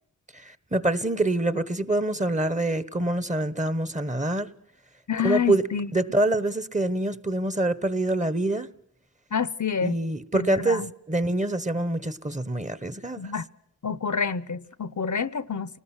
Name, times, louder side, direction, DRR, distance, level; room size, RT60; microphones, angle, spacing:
voice 1, 0.4-4.5 5.2-5.6 5.9-8.7 9.8-13.2, right 2 dB, 25° right, 1.2 m, -25 dB
voice 2, 5.1-5.9 9.3-10.0 10.3-10.9 13.2-13.5 13.8-15.8, left 6 dB, 65° left, 0.9 m, -28 dB
29.5 x 19.5 x 6.1 m
wide cardioid pair, 70°, 32 cm